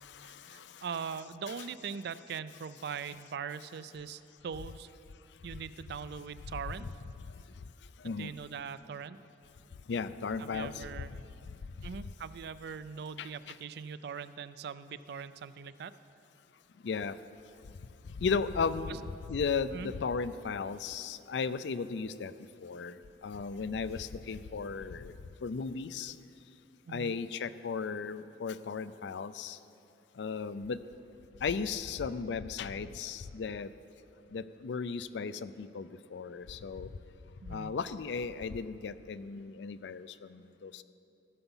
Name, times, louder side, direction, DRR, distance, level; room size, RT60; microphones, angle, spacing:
voice 1, 0.2-4.9 5.4-6.9 8.0-9.2 10.4-11.1 11.8-15.9 18.9-19.0 19.7-19.9 26.9-27.2 37.4-37.8, right 6 dB, 60° right, 14 dB, 0.4 m, -41 dB
voice 2, 9.9-10.8 13.2-13.3 16.8-17.1 18.2-19.0 19.3-22.3 22.6-23.0 23.2-25.1 25.4-26.1 26.9-29.6 30.2-30.8 31.4-33.7 34.3-36.9 37.5-40.8, left 5 dB, 70° left, 14 dB, 0.4 m, -35 dB
15.5 x 7.0 x 5.5 m, 2.7 s
head